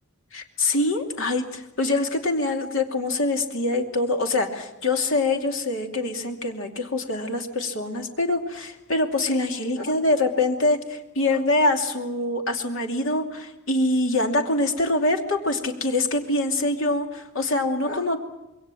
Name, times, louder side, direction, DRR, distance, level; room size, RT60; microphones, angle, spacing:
voice 1, 0.3-18.2, left 2 dB, 65° left, 3 dB, 2.7 m, -24 dB
26.5 x 23.0 x 7.7 m, 0.96 s
head